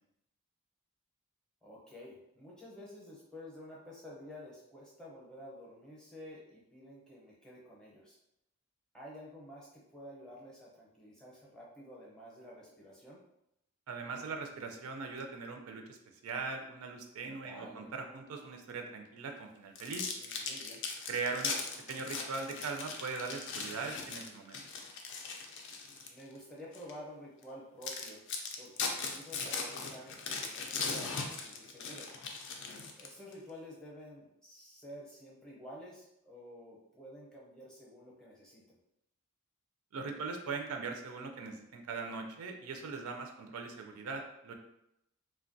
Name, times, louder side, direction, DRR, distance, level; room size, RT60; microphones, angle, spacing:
voice 1, 1.6-8.2 8.9-13.2 17.4-17.9 20.0-20.8 26.1-28.2 28.6-32.1 33.0-38.8, equal, 5° left, -5 dB, 0.6 m, -51 dB
voice 2, 13.9-16.0 16.2-20.1 21.1-21.6 21.9-24.6 39.9-44.5, right 4 dB, 70° right, 4 dB, 0.4 m, -40 dB
sound 1, 19.7-26.2 26.7-26.9 27.4-27.5 27.8-33.3, left 4 dB, 55° left, 0.4 m, -39 dB
3.1 x 2.2 x 2.5 m, 0.81 s
head